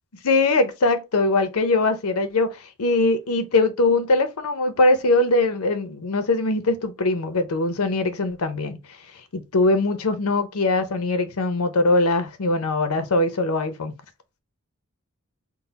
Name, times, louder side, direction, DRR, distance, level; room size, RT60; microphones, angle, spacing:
voice 1, 0.2-8.8 9.3-13.9, left 2 dB, 85° left, 0.7 m, -21 dB
3.8 x 2.1 x 4.0 m
head